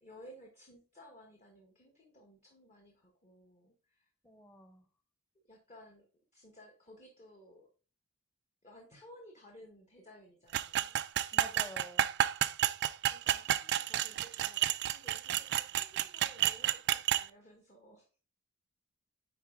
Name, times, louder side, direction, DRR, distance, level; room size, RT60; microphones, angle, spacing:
voice 1, 0.0-4.1 5.4-6.1 6.3-7.7 8.6-10.9 13.0-18.1, equal, 30° left, 1 dB, 1.2 m, -57 dB
voice 2, 4.2-4.9 11.3-12.1, equal, 10° left, 6 dB, 1.0 m, -49 dB
sound 1, 10.5-17.3, right 12 dB, 50° right, 0.3 m, -31 dB
9.3 x 3.9 x 3.6 m, 0.36 s
head